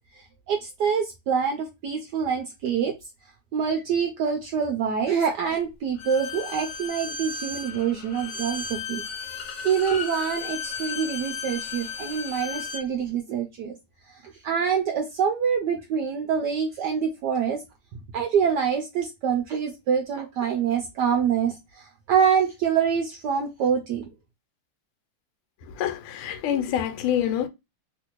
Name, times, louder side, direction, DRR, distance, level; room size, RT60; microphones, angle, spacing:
voice 1, 0.5-2.9 3.5-9.0 9.6-13.8 14.1-17.6 18.1-24.1, right 7 dB, 80° right, 0.9 m, -25 dB
Bowed string instrument, 6.0-12.9, left 5 dB, 70° left, 1.2 m, -34 dB
voice 2, 25.8-27.5, left 10 dB, 90° left, 1.5 m, -26 dB
3.2 x 2.6 x 2.9 m
omnidirectional pair, 2.3 m